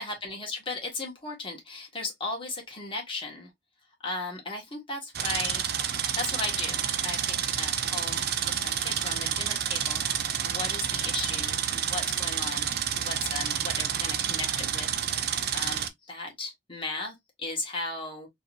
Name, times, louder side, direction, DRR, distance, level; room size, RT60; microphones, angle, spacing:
voice 1, 0.0-3.5 4.0-5.7 6.2-18.3, left 3 dB, 30° left, 1.7 m, -36 dB
sound 1, 5.1-15.9, right 9 dB, 60° right, 0.5 m, -29 dB
3.9 x 3.1 x 2.6 m
head